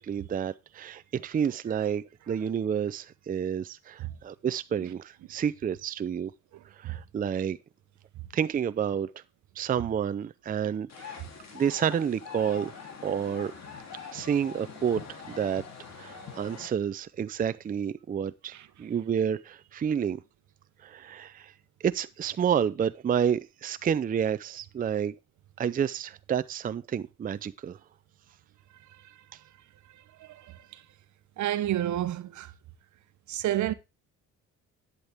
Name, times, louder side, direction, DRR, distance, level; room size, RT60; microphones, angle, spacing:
voice 1, 0.0-6.3 6.8-7.6 8.3-9.1 9.6-11.2 11.5-12.7 13.0-13.5 14.1-15.0 15.3-15.6 16.0-18.5 18.8-20.2 20.8-21.5 21.8-25.1 25.6-27.8, right 8 dB, 30° right, 0.4 m, -29 dB
sound 1, 10.9-16.7, left 5 dB, 60° left, 3.0 m, -43 dB
voice 2, 30.2-30.6 31.4-32.5 33.3-33.7, right 13 dB, 70° right, 0.8 m, -30 dB
10.5 x 8.3 x 3.5 m
cardioid pair, 90°, 30 cm